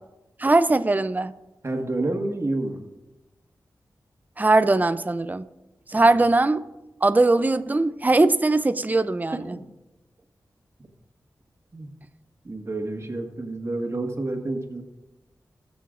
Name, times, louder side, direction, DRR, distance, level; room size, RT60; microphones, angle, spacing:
voice 1, 0.4-1.3 4.4-5.5 5.9-6.6 7.0-9.6, right 2 dB, 25° right, 13 dB, 0.5 m, -20 dB
voice 2, 1.6-2.8 5.9-6.1 9.5-9.6 11.7-11.9 12.4-14.8, right 2 dB, 40° right, 3 dB, 1.7 m, -29 dB
20.0 x 6.9 x 2.6 m, 1.0 s
cardioid pair, 50°, 7 cm